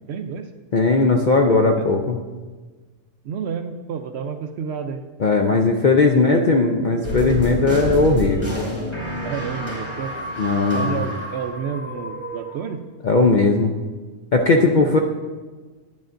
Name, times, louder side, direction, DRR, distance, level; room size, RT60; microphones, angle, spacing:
voice 1, 0.1-0.5 1.8-1.9 3.2-5.0 5.5-5.7 6.1-6.5 9.2-10.1 10.7-12.8, right 6 dB, 65° right, 7 dB, 0.7 m, -30 dB
voice 2, 0.7-2.2 5.2-8.5 10.4-11.0 13.0-13.8 14.3-15.0, left 3 dB, 55° left, 2 dB, 0.5 m, -18 dB
sound 1, 7.0-12.7, equal, 10° left, 2.2 m, -28 dB
10.5 x 9.5 x 2.5 m, 1.3 s
omnidirectional pair, 1.3 m